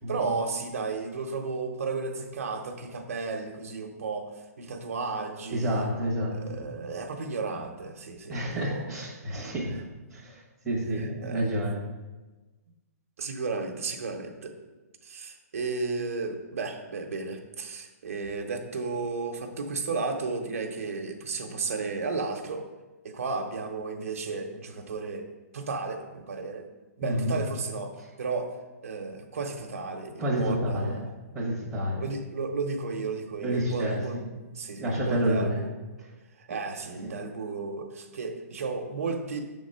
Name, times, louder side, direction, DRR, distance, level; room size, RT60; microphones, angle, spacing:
voice 1, 0.1-5.9 6.3-8.9 11.0-11.6 13.2-14.5 15.0-22.7 23.0-25.3 25.5-26.7 27.0-27.9 28.2-28.5 28.8-31.1 32.0-34.3 34.5-35.7 36.4-39.4, right 4 dB, 55° right, 4 dB, 0.9 m, -33 dB
voice 2, 5.5-6.6 8.3-11.8 27.0-27.4 30.2-31.1 31.3-32.1 33.4-34.2 34.8-35.6 37.0-37.2, equal, ahead, -7 dB, 1.0 m, -29 dB
7.1 x 3.7 x 5.5 m, 1.2 s
hypercardioid pair, 180°, 9 cm